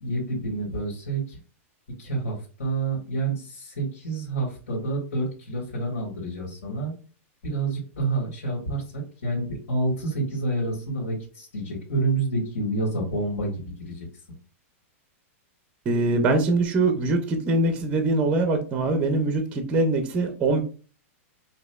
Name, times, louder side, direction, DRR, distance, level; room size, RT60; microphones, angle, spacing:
voice 1, 0.0-1.4 2.0-6.9 7.4-14.1, right 2 dB, 85° left, -4 dB, 2.0 m, -28 dB
voice 2, 15.9-20.6, right 2 dB, 15° right, 6 dB, 0.5 m, -23 dB
6.2 x 2.6 x 2.3 m, 0.38 s
supercardioid pair, 170°, 8 cm